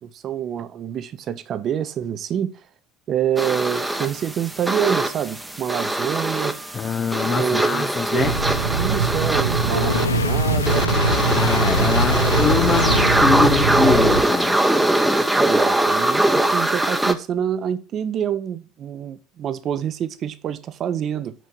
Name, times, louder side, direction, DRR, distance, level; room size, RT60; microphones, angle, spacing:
voice 1, 0.0-2.6 3.1-6.6 7.3-8.4 8.7-10.9 12.1-13.1 13.6-13.7 15.3-21.3, right 9 dB, 40° right, 0.7 m, -27 dB
sound 1, 3.4-17.1, right 1 dB, 5° right, 0.8 m, -22 dB
voice 2, 6.7-8.4 11.3-14.6, left 6 dB, 30° left, 0.5 m, -23 dB
sound 2, 8.2-14.2, right 5 dB, 80° right, 0.9 m, -23 dB
Fire, 9.7-13.3, left 6 dB, 80° left, 0.3 m, -25 dB
6.2 x 5.5 x 6.0 m
figure-of-eight pair, 70°, 0 cm